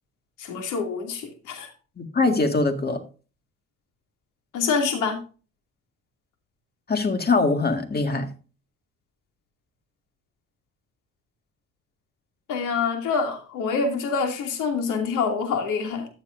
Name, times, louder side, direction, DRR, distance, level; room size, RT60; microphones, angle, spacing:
voice 1, 0.4-1.7 4.5-5.2 12.5-16.1, left 5 dB, 90° left, 2.8 m, -26 dB
voice 2, 2.0-3.0 6.9-8.3, left 3 dB, 30° left, 2.0 m, -22 dB
14.0 x 7.2 x 2.7 m
cardioid pair, 90°, 30 cm